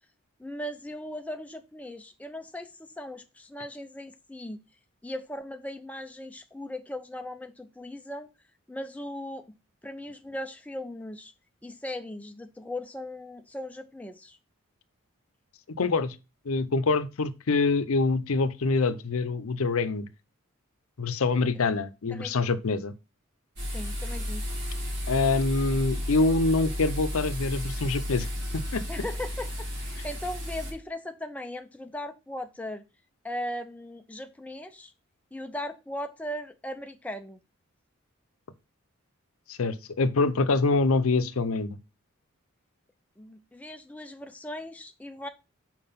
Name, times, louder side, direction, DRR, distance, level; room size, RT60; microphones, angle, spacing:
voice 1, 0.4-4.6 5.0-8.3 8.7-9.5 9.8-11.3 11.6-14.4 22.1-22.6 23.7-24.4 28.9-32.8 33.2-34.9 35.3-37.4 43.2-45.3, left 1 dB, 5° left, 0.5 m, -38 dB
voice 2, 15.8-16.2 16.4-20.1 21.0-22.9 25.1-28.3 28.5-28.8 39.5-41.8, left 3 dB, 80° left, 0.6 m, -25 dB
sound 1, 23.6-30.7, left 1 dB, 50° right, 3.0 m, -33 dB
5.7 x 4.6 x 5.5 m
head